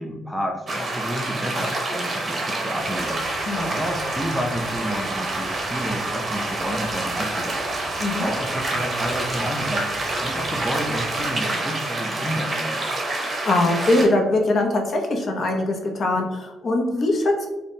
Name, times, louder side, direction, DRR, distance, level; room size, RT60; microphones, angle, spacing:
voice 1, 0.0-3.2 3.7-7.6 8.2-9.9 10.2-12.9, equal, ahead, 1 dB, 0.4 m, -30 dB
sound 1, 0.7-14.1, right 2 dB, 35° right, 0.6 m, -27 dB
sound 2, 2.8-11.2, right 3 dB, 80° right, 0.3 m, -40 dB
voice 2, 13.2-17.5, left 2 dB, 50° left, 2 dB, 0.6 m, -22 dB
3.3 x 2.1 x 2.6 m, 1.1 s
cardioid pair, 90°, 0 cm